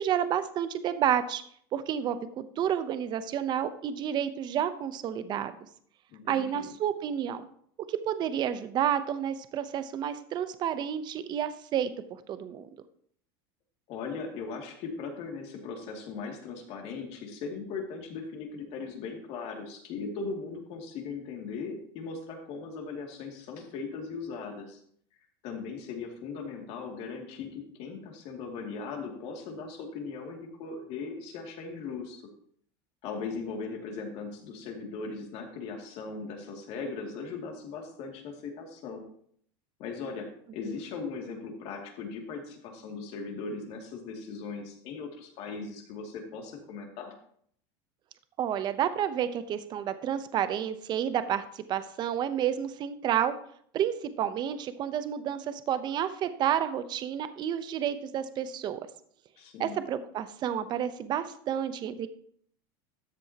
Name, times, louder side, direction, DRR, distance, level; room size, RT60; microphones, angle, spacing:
voice 1, 0.0-1.4 1.7-5.5 6.3-7.4 7.9-12.7 40.6-40.8 48.4-53.3 53.7-58.8 59.6-62.1, right 9 dB, 35° right, 12 dB, 0.8 m, -30 dB
voice 2, 6.1-6.7 13.9-24.8 25.4-32.2 33.0-39.0 39.8-47.1 59.4-59.8, left 4 dB, 50° left, 2 dB, 2.5 m, -39 dB
13.0 x 7.7 x 2.9 m, 0.62 s
supercardioid pair, 135°, 13 cm